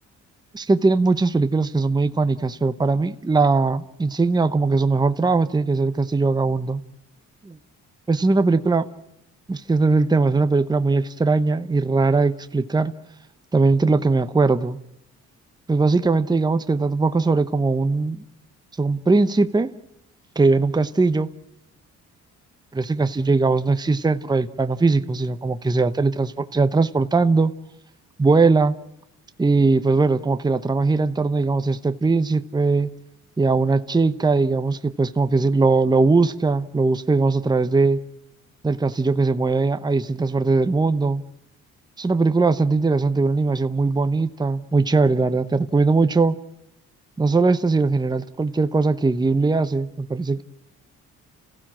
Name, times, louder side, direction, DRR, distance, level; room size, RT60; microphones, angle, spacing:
voice 1, 0.5-6.8 7.4-7.6 8.1-8.8 9.5-12.9 13.5-14.8 15.7-18.2 18.8-19.7 20.4-21.3 22.7-27.5 28.2-28.8 29.4-32.9 33.4-38.0 38.6-41.2 42.0-46.4 47.2-50.4, right 3 dB, 15° right, 11 dB, 0.9 m, -20 dB
29.0 x 15.5 x 7.5 m, 0.82 s
cardioid pair, 90°, 30 cm